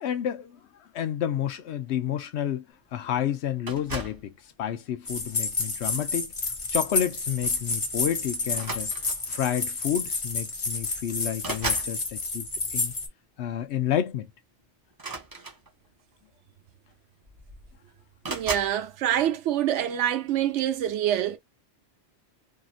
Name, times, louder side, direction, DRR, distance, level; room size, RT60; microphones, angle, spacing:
voice 1, 0.0-2.6 2.9-4.3 4.6-6.3 6.7-8.9 9.3-12.9 13.4-14.3, left 10 dB, 75° left, 0.9 m, -30 dB
sound 1, 3.7-4.3 5.2-5.5 7.0-7.1 7.4-7.6 8.5-9.4 10.4-10.5 10.8-12.0 14.9-16.0 16.9-17.0 17.2-17.7 18.2-18.8, right 3 dB, 20° right, 0.7 m, -36 dB
sound 2, 5.1-13.1, left 3 dB, 35° left, 0.5 m, -30 dB
voice 2, 18.3-21.4, right 11 dB, 90° right, 0.9 m, -26 dB
2.8 x 2.6 x 2.4 m
omnidirectional pair, 1.2 m